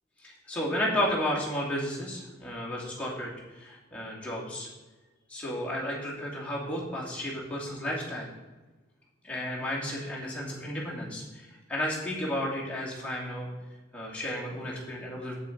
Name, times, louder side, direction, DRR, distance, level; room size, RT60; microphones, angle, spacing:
voice 1, 0.2-4.7 5.3-8.3 9.2-13.5 13.9-15.3, equal, 5° left, -5 dB, 2.7 m, -33 dB
8.6 x 7.3 x 5.3 m, 1.2 s
head